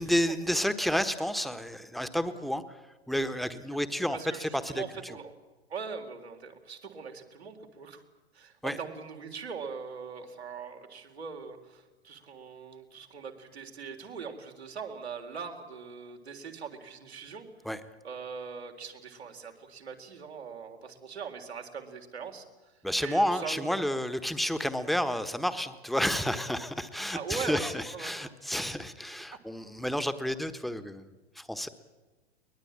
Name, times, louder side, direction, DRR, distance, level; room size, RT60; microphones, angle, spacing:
voice 1, 0.0-2.8 3.1-5.2 8.6-8.8 17.6-17.8 22.8-31.7, equal, ahead, 11 dB, 1.3 m, -30 dB
voice 2, 4.0-5.3 5.7-8.0 8.3-17.5 18.0-23.8 27.1-28.3, right 5 dB, 80° right, 4 dB, 3.8 m, -41 dB
23.0 x 20.5 x 8.7 m, 1.2 s
figure-of-eight pair, 105°, 32 cm